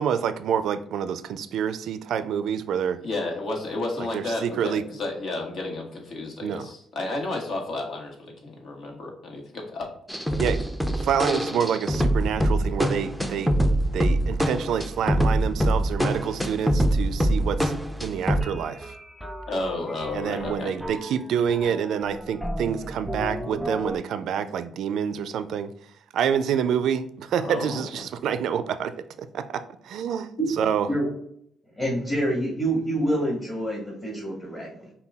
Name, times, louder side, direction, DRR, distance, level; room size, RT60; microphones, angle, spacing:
voice 1, 0.0-3.0 4.0-4.8 6.4-6.7 10.4-10.6 10.9-13.5 13.9-18.9 20.1-25.7 26.1-30.3 30.6-30.9, right 8 dB, 75° right, 12 dB, 0.3 m, -27 dB
voice 2, 3.0-9.9 19.5-20.7 27.4-28.0, left 2 dB, 65° left, 1 dB, 1.3 m, -32 dB
sound 1, 10.1-18.6 18.8-18.9 19.2-21.2 21.5-24.0, right 1 dB, ahead, 0.5 m, -25 dB
voice 3, 31.7-34.9, right 1 dB, 20° left, -4 dB, 1.6 m, -27 dB
5.6 x 2.2 x 3.5 m, 0.67 s
cardioid pair, 90°, 0 cm